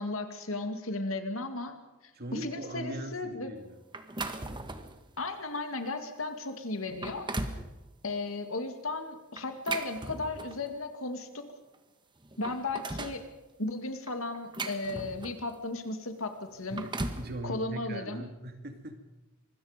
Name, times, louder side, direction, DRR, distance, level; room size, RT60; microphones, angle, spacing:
voice 1, 0.0-1.8 2.3-3.5 5.2-7.3 8.0-11.5 12.4-13.2 13.6-16.9 17.4-18.3, left 2 dB, 70° left, 7 dB, 2.4 m, -35 dB
voice 2, 2.2-3.6 16.7-16.9 17.1-19.0, right 1 dB, 50° right, 6 dB, 2.3 m, -40 dB
sound 1, 3.9-5.0 5.5-5.7 6.3-6.4 6.8-7.7 9.4-10.7 11.7-11.8 12.2-13.2 14.1-15.5 16.5-17.3, right 2 dB, 20° right, 1.5 m, -37 dB
25.5 x 21.0 x 5.2 m, 1.1 s
head